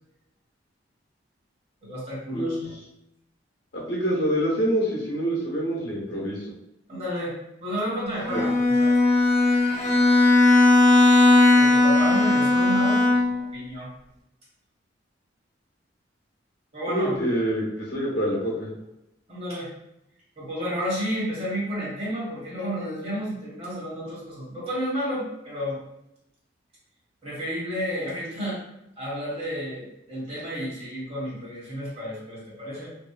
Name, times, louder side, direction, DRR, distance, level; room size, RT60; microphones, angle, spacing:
voice 1, 1.8-2.7 6.9-9.0 11.5-13.9 16.7-17.1 19.3-19.7 20.4-25.8 27.2-28.6 29.0-32.9, equal, 35° right, -8 dB, 1.3 m, -31 dB
voice 2, 2.3-2.6 3.7-6.5 8.3-8.4 16.9-18.7, equal, 60° left, -4 dB, 0.8 m, -26 dB
Bowed string instrument, 8.2-13.5, left 2 dB, 25° left, 1.5 m, -18 dB
2.7 x 2.3 x 2.2 m, 0.85 s
head